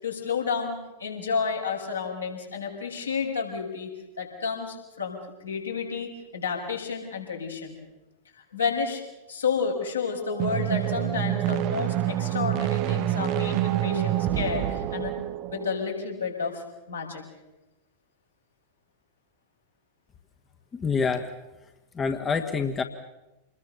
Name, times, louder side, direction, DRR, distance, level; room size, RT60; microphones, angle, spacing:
voice 1, 0.0-3.9 4.2-7.8 8.5-9.0 9.3-15.1 15.5-17.2, left 5 dB, 75° left, -1 dB, 6.8 m, -31 dB
sound 1, 10.3-15.9, right 14 dB, 40° right, 1.0 m, -27 dB
voice 2, 20.7-21.3 21.9-22.8, left 5 dB, 20° left, 6 dB, 1.6 m, -26 dB
28.0 x 21.0 x 7.0 m, 1.0 s
figure-of-eight pair, 90°, 0 cm